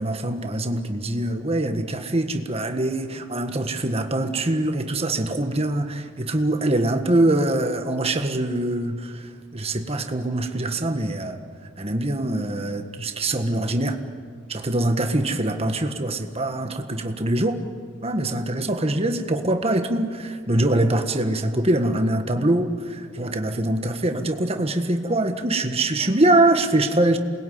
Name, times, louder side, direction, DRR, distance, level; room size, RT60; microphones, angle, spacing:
voice 1, 0.0-11.4 11.8-14.0 14.5-17.6 18.0-27.2, right 1 dB, 30° right, 6 dB, 1.6 m, -23 dB
28.0 x 21.0 x 9.6 m, 2.2 s
head